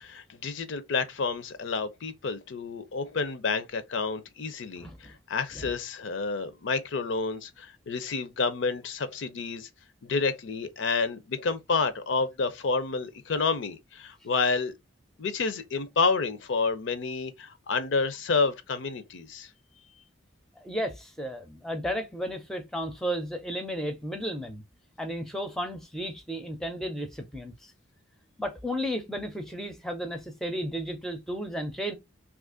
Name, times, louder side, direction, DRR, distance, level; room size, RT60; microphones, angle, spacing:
voice 1, 0.0-9.7 10.0-14.7 15.2-19.5, left 4 dB, 70° left, 0.5 m, -29 dB
voice 2, 4.8-5.1 5.6-5.7 20.6-24.6 25.0-27.7 28.4-31.9, equal, ahead, 0.4 m, -33 dB
2.8 x 2.4 x 3.6 m
head